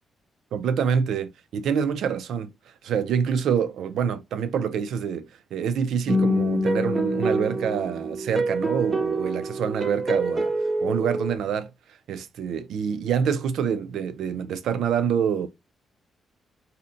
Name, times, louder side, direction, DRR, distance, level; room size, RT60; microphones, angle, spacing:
voice 1, 0.5-2.5 2.8-5.3 5.5-10.5 10.8-11.7 12.1-15.5, right 7 dB, 75° right, 0.4 m, -26 dB
sound 1, 6.1-11.4, right 1 dB, 15° right, 0.5 m, -25 dB
2.6 x 2.1 x 3.7 m
cardioid pair, 170°, 0 cm